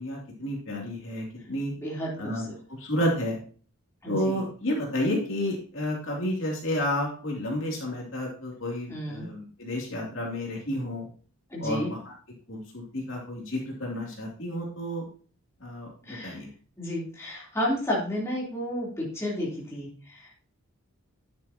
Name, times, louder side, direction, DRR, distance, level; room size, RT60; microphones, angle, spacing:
voice 1, 0.0-1.7 2.2-3.4 4.1-11.1 11.6-12.1 12.5-15.0 15.6-16.5, left 1 dB, 60° left, -2 dB, 2.8 m, -31 dB
voice 2, 1.8-2.2 2.5-2.6 4.0-4.4 8.9-9.3 11.5-11.9 16.1-16.4 16.8-20.4, equal, 10° left, -5 dB, 3.4 m, -32 dB
10.0 x 8.4 x 2.9 m, 0.41 s
head